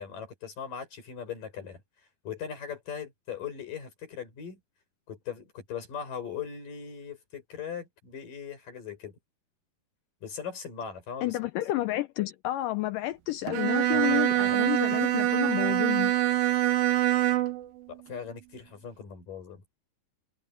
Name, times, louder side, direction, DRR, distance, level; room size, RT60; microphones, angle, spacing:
voice 1, 0.0-1.8 2.2-4.6 5.1-9.2 10.2-11.4 13.9-14.5 17.9-19.6, left 7 dB, 60° left, 7.5 m, -39 dB
voice 2, 11.2-16.1, left 16 dB, 85° left, 2.0 m, -30 dB
Bowed string instrument, 13.5-17.7, right 14 dB, 75° right, 2.8 m, -25 dB
omnidirectional pair, 4.4 m